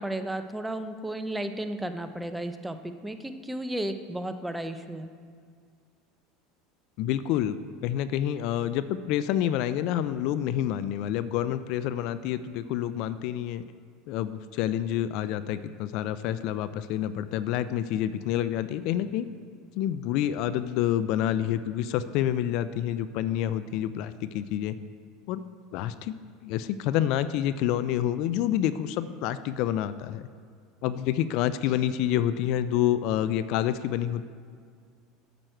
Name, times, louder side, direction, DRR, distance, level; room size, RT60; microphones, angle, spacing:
voice 1, 0.0-5.1, right 1 dB, 10° right, 8 dB, 0.6 m, -33 dB
voice 2, 7.0-13.6 14.1-19.3 19.8-24.8 25.3-25.4 25.7-26.2 26.4-30.3 30.8-34.3, left 11 dB, 60° left, 14 dB, 0.4 m, -28 dB
9.0 x 7.7 x 4.5 m, 2.1 s
supercardioid pair, 100°, 0 cm